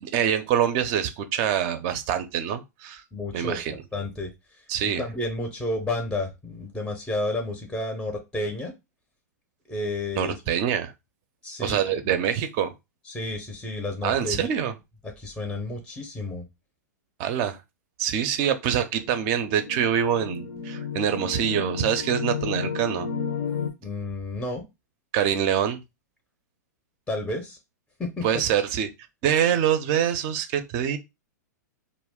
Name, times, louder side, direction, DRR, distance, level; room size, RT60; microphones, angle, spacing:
voice 1, 0.0-3.0 3.3-3.8 4.7-5.0 10.2-10.9 11.6-12.7 14.0-14.7 17.2-17.6 18.0-23.1 25.1-25.8 28.2-28.9 29.2-31.0, right 9 dB, 40° right, 0.5 m, -25 dB
voice 2, 3.1-8.7 9.7-10.4 11.4-12.1 13.0-14.5 15.0-16.5 20.5-20.6 23.8-24.6 27.1-27.6 28.0-28.4, left 2 dB, 5° left, 0.5 m, -31 dB
sound 1, 19.0-23.7, left 5 dB, 55° left, 0.5 m, -32 dB
2.3 x 2.1 x 3.5 m
hypercardioid pair, 110°, 10 cm